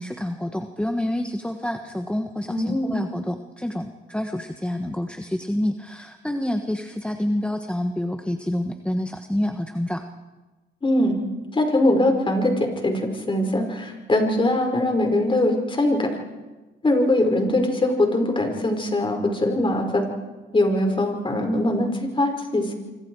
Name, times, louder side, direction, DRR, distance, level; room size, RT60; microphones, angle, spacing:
voice 1, 0.0-10.0, left 1 dB, 5° left, 6 dB, 1.3 m, -28 dB
voice 2, 2.5-3.0 10.8-11.2 11.5-16.1 16.8-20.0 20.5-22.7, left 1 dB, 25° left, 4 dB, 5.1 m, -22 dB
27.0 x 25.5 x 4.8 m, 1.2 s
cardioid pair, 90°, 20 cm